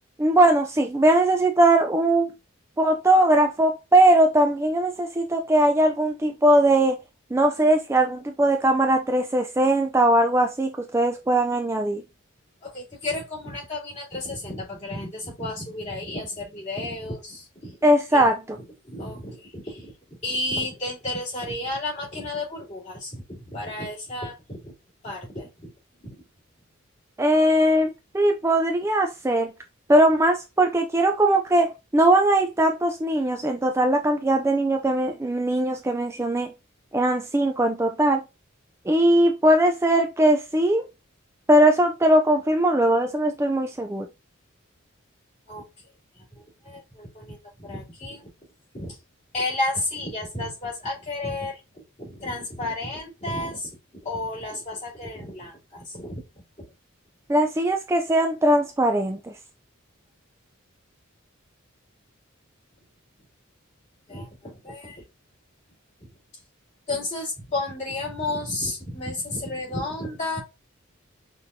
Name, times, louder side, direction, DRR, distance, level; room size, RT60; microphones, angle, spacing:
voice 1, 0.2-2.3 2.8-7.0 7.3-12.0 17.8-18.6 27.2-29.5 29.9-36.5 36.9-38.2 38.9-40.9 41.5-44.1 57.3-59.3, right 1 dB, 15° right, 0.4 m, -20 dB
voice 2, 12.6-17.8 18.1-18.3 18.8-24.7 25.0-25.7 26.0-26.2 45.5-45.7 46.1-48.3 48.7-49.0 49.3-56.2 56.6-56.7 64.1-65.0 66.0-66.1 66.9-70.4, left 2 dB, 35° left, 2.9 m, -32 dB
6.0 x 3.1 x 2.6 m
head